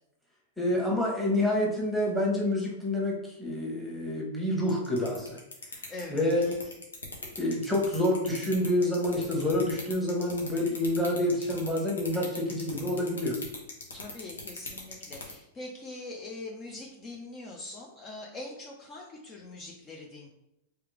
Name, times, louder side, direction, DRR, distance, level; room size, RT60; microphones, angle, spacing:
voice 1, 0.6-5.4 6.1-6.7 7.4-13.4, left 1 dB, ahead, -2 dB, 1.3 m, -28 dB
sound 1, 4.7-15.3, left 3 dB, 85° left, 1.1 m, -39 dB
voice 2, 5.9-6.2 13.9-20.3, left 2 dB, 30° left, -1 dB, 0.7 m, -42 dB
3.4 x 3.3 x 3.4 m, 0.84 s
hypercardioid pair, 100°, 0 cm